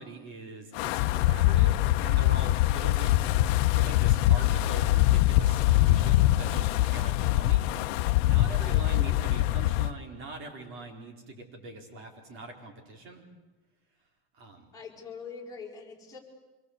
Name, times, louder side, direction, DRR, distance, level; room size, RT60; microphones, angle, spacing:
voice 1, 0.0-3.3 3.7-7.7 8.2-13.2 14.3-14.7, right 2 dB, 40° right, 3 dB, 4.6 m, -43 dB
Wind, 0.8-9.9, left 15 dB, 85° left, 0.9 m, -23 dB
voice 2, 8.6-9.3 14.7-16.2, left 5 dB, 10° left, -2 dB, 5.0 m, -44 dB
26.0 x 22.5 x 8.2 m, 1.2 s
cardioid pair, 165°, 30 cm